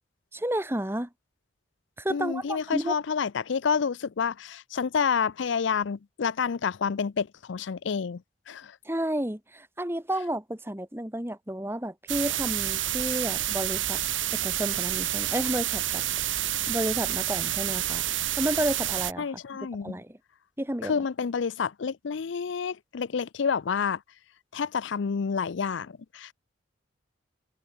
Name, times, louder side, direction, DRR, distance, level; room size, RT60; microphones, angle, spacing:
voice 1, 0.3-1.1 2.0-2.9 8.9-14.0 14.4-16.0 16.7-18.0 18.4-19.3 19.8-20.2 20.6-20.9, right 1 dB, 10° right, 1.9 m, -31 dB
voice 2, 2.1-8.2 8.5-8.7 19.2-19.9 20.8-24.0 24.5-26.3, left 6 dB, 70° left, 0.5 m, -29 dB
sound 1, 12.1-19.1, right 13 dB, 80° right, 2.5 m, -29 dB
head